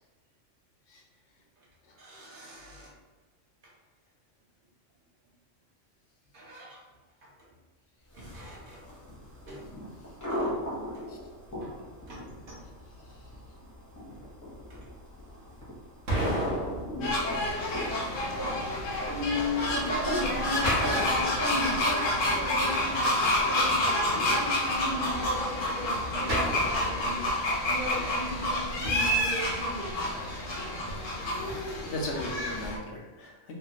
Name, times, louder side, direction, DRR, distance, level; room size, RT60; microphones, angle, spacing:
voice 1, 1.9-2.9 3.6-3.7 6.3-6.8 7.2-7.5 8.1-8.8 9.4-9.6 10.3-10.6 10.9-11.0 11.6-11.8 12.1-12.6 14.2-14.3 14.7-14.8 18.3-18.6 19.1-29.9, left 1 dB, 50° right, -3 dB, 0.8 m, -36 dB
sound 1, 8.1-27.4, equal, 20° left, 0.6 m, -41 dB
sound 2, 12.2-13.1 16.1-18.0 20.6-22.2 26.3-27.6 28.8-30.0 31.5-31.6, equal, 75° right, 1.3 m, -33 dB
sound 3, 17.0-32.8, left 1 dB, 90° left, 1.1 m, -29 dB
voice 2, 31.9-33.6, left 1 dB, 70° left, -1 dB, 0.9 m, -37 dB
3.2 x 2.2 x 2.8 m, 1.2 s
omnidirectional pair, 1.3 m